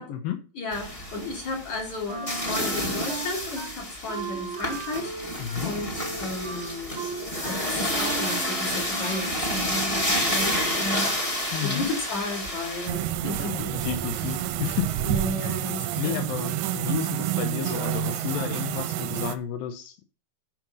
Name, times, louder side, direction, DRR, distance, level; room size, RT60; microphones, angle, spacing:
voice 1, 0.0-0.4 5.4-5.7 11.5-11.9 13.3-14.9 16.0-20.0, left 10 dB, 85° left, 2.6 m, -32 dB
voice 2, 0.5-7.1 7.5-11.1 11.6-13.7 15.0-16.3, left 2 dB, 55° left, 4.9 m, -33 dB
sound 1, 0.7-12.9, left 1 dB, 15° left, 1.2 m, -29 dB
Wind instrument woodwind instrument, 2.1-3.7 4.1-9.4, right 4 dB, 55° right, 0.7 m, -37 dB
sound 2, 12.9-19.4, right 12 dB, 75° right, 1.8 m, -29 dB
9.0 x 6.2 x 5.4 m
omnidirectional pair, 4.1 m